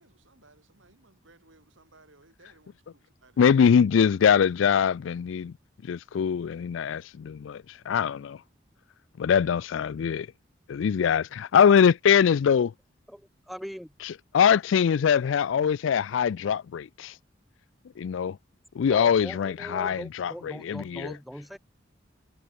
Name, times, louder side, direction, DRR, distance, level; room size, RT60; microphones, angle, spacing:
voice 1, 0.0-3.7, right 2 dB, 80° right, 5.9 m, -59 dB
voice 2, 3.4-5.5 5.8-8.4 9.2-10.3 10.7-12.7 14.0-17.1 18.0-18.4 18.8-21.1, left 7 dB, 75° left, 0.3 m, -23 dB
voice 3, 13.5-13.9 18.9-21.6, equal, ahead, 0.6 m, -40 dB
head